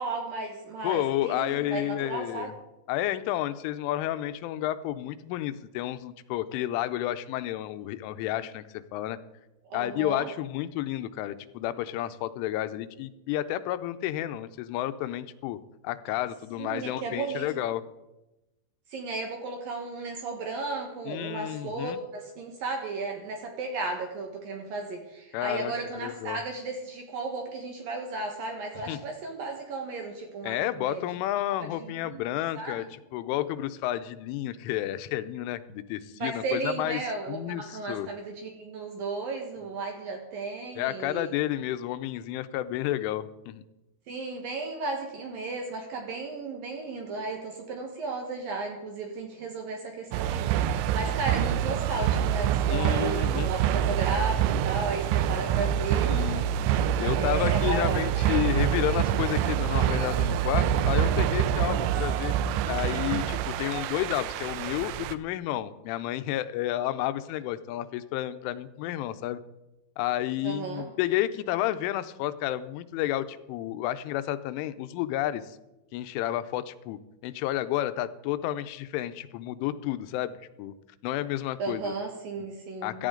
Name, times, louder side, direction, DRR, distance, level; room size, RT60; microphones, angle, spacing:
voice 1, 0.0-2.5 9.7-10.3 16.6-17.6 18.9-31.1 31.6-32.2 32.5-32.9 36.2-41.3 44.1-56.1 57.1-58.0 70.4-70.9 81.6-83.1, right 3 dB, 65° right, 2 dB, 2.4 m, -34 dB
voice 2, 0.8-2.5 2.9-8.6 8.9-9.2 9.7-15.6 15.8-17.8 21.1-22.0 25.3-26.4 28.9-29.0 30.4-32.8 33.1-37.0 37.3-38.1 40.8-43.6 51.1-51.2 52.7-53.5 56.1-56.5 57.0-62.4 62.7-69.4 70.0-75.6 75.9-80.7 81.0-81.9 82.8-83.1, left 13 dB, 85° left, 12 dB, 3.1 m, -31 dB
sound 1, 50.1-65.1, right 10 dB, 85° right, 2.4 m, -26 dB
16.0 x 13.5 x 3.8 m, 0.99 s
omnidirectional pair, 5.5 m